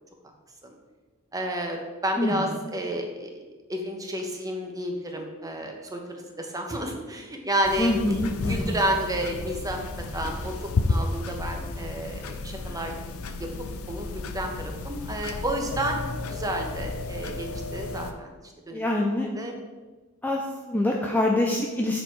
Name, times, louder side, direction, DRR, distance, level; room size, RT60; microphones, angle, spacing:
voice 1, 1.3-3.4 3.7-8.2 8.5-9.8 10.1-10.5 10.8-13.0 13.4-13.5 13.9-16.0 16.3-18.3 18.7-18.8 19.3-19.5, right 1 dB, 15° right, 2 dB, 0.9 m, -31 dB
sound 1, 7.6-18.1, left 3 dB, 70° left, 0.6 m, -32 dB
voice 2, 7.8-8.8 18.7-19.3 20.2-22.0, left 1 dB, 10° left, -1 dB, 0.5 m, -25 dB
6.9 x 4.4 x 4.6 m, 1.3 s
head